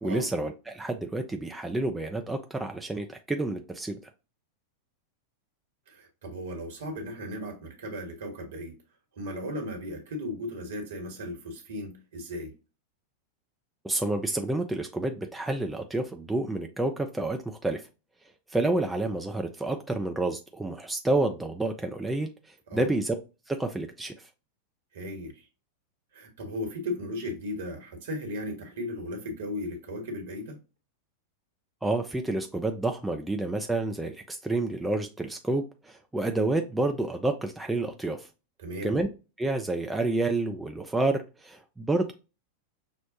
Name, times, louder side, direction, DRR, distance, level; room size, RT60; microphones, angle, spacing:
voice 1, 0.0-4.0 13.8-17.8 18.5-23.1 23.5-24.3 31.8-38.3 38.8-39.1 39.4-42.1, right 2 dB, 5° right, 0.4 m, -29 dB
voice 2, 5.9-8.8 9.1-12.5 22.7-22.9 24.9-25.5 26.1-30.6 38.6-39.0, left 1 dB, 60° right, 1.2 m, -36 dB
6.0 x 2.1 x 2.7 m
figure-of-eight pair, 90°, 0 cm